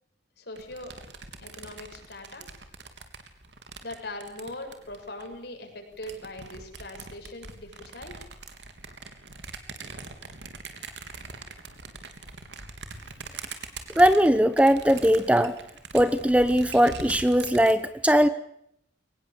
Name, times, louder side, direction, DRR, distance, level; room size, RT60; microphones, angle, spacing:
voice 1, 0.5-0.9 1.4-2.5 3.8-8.2, left 1 dB, 60° left, 4 dB, 7.0 m, -40 dB
sound 1, 0.6-5.4 5.9-17.7, right 4 dB, 70° right, 3.4 m, -42 dB
voice 2, 14.0-15.5 15.9-18.3, equal, 5° right, 13 dB, 0.9 m, -20 dB
24.0 x 20.0 x 8.5 m, 0.72 s
head